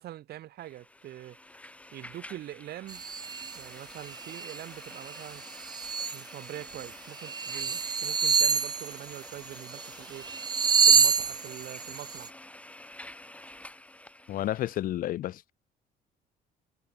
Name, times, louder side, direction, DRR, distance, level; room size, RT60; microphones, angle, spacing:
voice 1, 0.0-1.4 1.9-3.0 3.5-5.4 6.1-10.3 10.8-12.3, right 14 dB, 70° right, 3.5 m, -44 dB
sound 1, 0.6-14.8, left 1 dB, 5° left, 6.3 m, -49 dB
sound 2, 2.9-3.6 4.0-4.6 5.0-6.2 6.7-6.9 7.2-9.9 10.2-12.3, right 5 dB, 25° right, 0.6 m, -27 dB
voice 2, 14.3-15.5, left 13 dB, 55° left, 0.5 m, -31 dB
cardioid pair, 110°, 17 cm